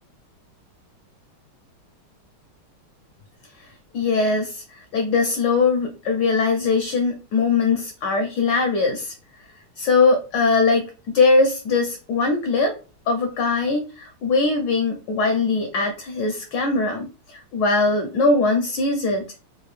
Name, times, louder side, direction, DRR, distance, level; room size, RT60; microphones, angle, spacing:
voice 1, 3.9-9.1 9.8-12.8 13.1-19.2, left 3 dB, 75° left, 5 dB, 1.0 m, -21 dB
3.8 x 2.3 x 3.1 m, 0.34 s
omnidirectional pair, 2.4 m